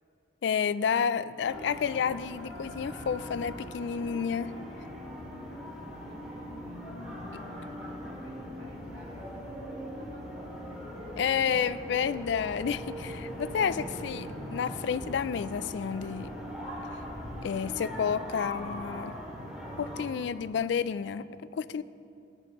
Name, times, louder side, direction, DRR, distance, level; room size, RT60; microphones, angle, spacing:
voice 1, 0.4-4.5 11.2-16.3 17.4-19.1 19.8-21.8, left 7 dB, 65° left, 16 dB, 0.3 m, -30 dB
sound 1, 1.4-20.0, equal, ahead, 2.5 m, -40 dB
voice 2, 5.7-10.7, equal, 50° right, -6 dB, 2.6 m, -55 dB
18.0 x 10.5 x 3.0 m, 2.6 s
head